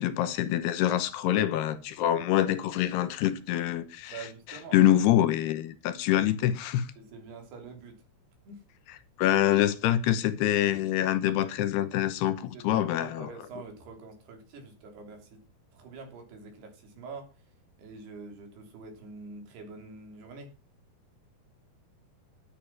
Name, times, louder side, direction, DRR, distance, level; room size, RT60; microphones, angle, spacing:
voice 1, 0.0-4.1 4.7-6.9 9.2-13.3, left 12 dB, 80° left, 3.0 m, -25 dB
voice 2, 4.1-4.8 7.0-8.0 8.5-8.6 12.4-15.5 15.7-17.3 17.8-20.5, right 4 dB, 75° right, 5.2 m, -45 dB
11.5 x 10.5 x 5.9 m
omnidirectional pair, 4.7 m